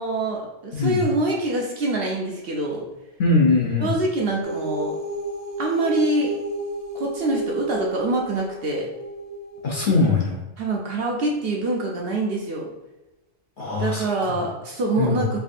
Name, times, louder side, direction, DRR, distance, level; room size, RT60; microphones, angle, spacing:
voice 1, 0.0-2.8 3.8-5.0 5.6-6.3 6.9-8.9 10.6-12.7 13.8-15.4, right 2 dB, 60° right, -1 dB, 0.7 m, -25 dB
voice 2, 0.7-1.0 3.2-3.9 9.6-10.4 13.6-14.3 15.0-15.2, left 3 dB, 55° left, -3 dB, 0.6 m, -21 dB
sound 1, 4.4-10.0, right 1 dB, 80° right, 1.2 m, -31 dB
4.6 x 2.5 x 2.5 m, 0.99 s
omnidirectional pair, 1.3 m